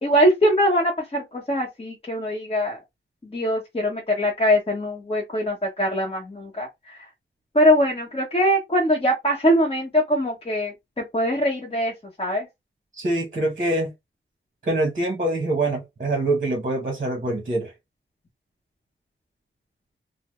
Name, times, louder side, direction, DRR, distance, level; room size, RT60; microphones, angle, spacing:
voice 1, 0.0-2.8 3.2-7.0 7.5-11.9 12.2-12.5, equal, 25° left, 0.9 m, -22 dB
voice 2, 12.9-13.9 14.6-17.7, right 2 dB, 40° right, 0.9 m, -24 dB
3.3 x 2.0 x 3.0 m
wide cardioid pair, 95°, 21 cm